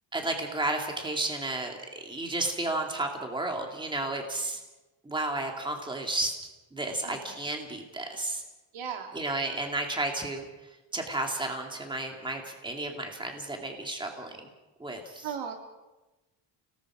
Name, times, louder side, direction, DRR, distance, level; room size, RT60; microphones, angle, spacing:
voice 1, 0.1-4.6 5.0-6.3 6.7-8.4 9.1-14.5 14.8-15.3, right 2 dB, 10° right, 2 dB, 2.3 m, -32 dB
voice 2, 8.7-9.2 15.2-15.6, right 7 dB, 75° right, 4 dB, 2.6 m, -37 dB
29.0 x 19.0 x 4.9 m, 1.1 s
cardioid pair, 180°, 48 cm